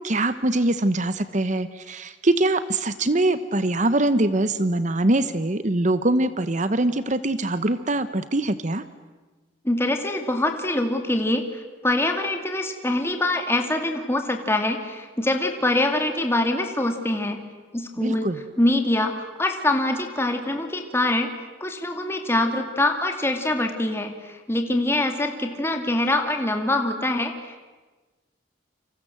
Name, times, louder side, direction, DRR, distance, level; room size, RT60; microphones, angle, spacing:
voice 1, 0.0-8.8 18.0-18.4, right 2 dB, 40° right, 13 dB, 1.0 m, -23 dB
voice 2, 9.6-17.4 17.7-18.3 18.6-21.3 21.6-27.6, left 1 dB, 15° left, 5 dB, 2.4 m, -24 dB
29.5 x 26.0 x 7.8 m, 1.3 s
head